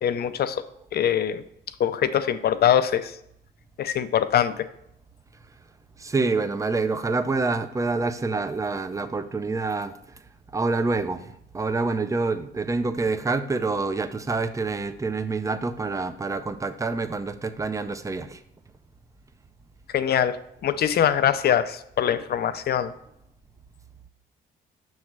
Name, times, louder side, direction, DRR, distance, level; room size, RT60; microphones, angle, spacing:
voice 1, 0.0-0.6 0.9-1.4 1.8-3.2 3.8-4.7 19.9-22.9, left 9 dB, 55° left, 12 dB, 0.5 m, -23 dB
voice 2, 6.0-9.9 10.5-18.4, right 3 dB, 15° right, 11 dB, 0.5 m, -27 dB
6.2 x 3.2 x 5.9 m, 0.75 s
cardioid pair, 90°, 20 cm